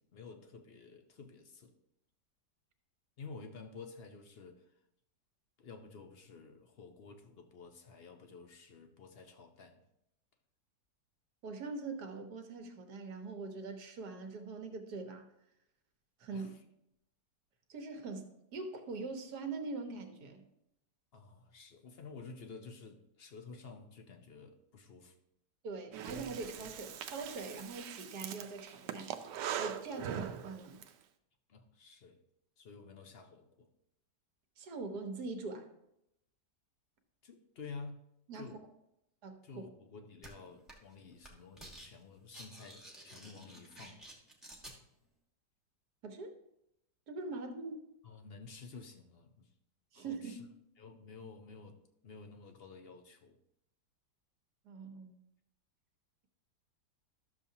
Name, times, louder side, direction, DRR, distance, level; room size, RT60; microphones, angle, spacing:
voice 1, 0.0-1.7 3.2-4.7 5.6-9.8 16.3-16.6 21.1-25.2 31.5-32.2 32.6-33.7 37.2-38.0 38.4-38.6 39.4-44.0 48.0-49.5 49.9-50.5 50.8-51.8 52.0-53.4, left 4 dB, 50° left, 5 dB, 0.7 m, -51 dB
voice 2, 11.4-15.3 16.2-16.5 17.7-20.4 25.6-29.3 29.6-30.8 34.6-35.7 38.3-38.5 39.2-39.4 46.0-46.3 47.1-47.8 49.9-50.5 54.6-55.1, right 3 dB, 70° right, 6 dB, 1.6 m, -42 dB
Breathing, 25.9-30.9, right 9 dB, 90° right, 1.3 m, -42 dB
sound 1, 40.2-40.3 40.7-40.9 41.2-41.9 42.2-44.8, right 1 dB, ahead, 1.2 m, -51 dB
12.0 x 6.9 x 2.8 m, 0.82 s
omnidirectional pair, 1.8 m